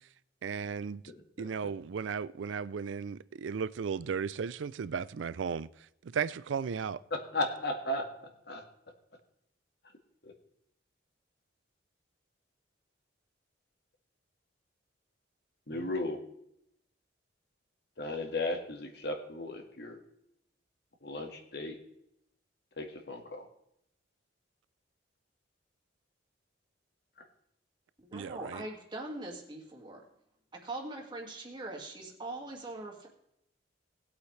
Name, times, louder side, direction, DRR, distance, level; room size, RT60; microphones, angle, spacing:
voice 1, 0.4-1.0 1.4-5.7 6.1-7.0 28.1-28.6, right 6 dB, 80° right, 0.4 m, -35 dB
voice 2, 1.4-1.7 7.3-8.0 8.5-8.6 10.2-10.3 15.7-16.2 18.0-20.0 21.0-21.8 22.8-23.5, left 1 dB, 60° left, 1.7 m, -35 dB
voice 3, 28.0-30.0 30.5-33.1, right 2 dB, 25° right, 2.1 m, -42 dB
19.0 x 8.2 x 3.2 m
head